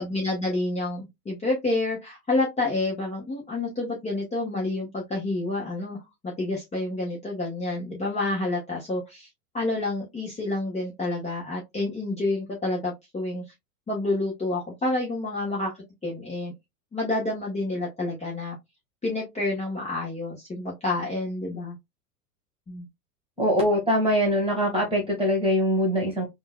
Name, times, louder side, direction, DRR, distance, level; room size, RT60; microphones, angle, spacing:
voice 1, 0.0-9.3 9.5-13.4 13.9-16.5 16.9-18.6 19.0-21.8 22.7-22.9, left 2 dB, 15° left, 1.2 m, -29 dB
voice 2, 23.4-26.3, equal, 10° right, 1.8 m, -23 dB
3.7 x 2.5 x 2.2 m
hypercardioid pair, 105°, 46 cm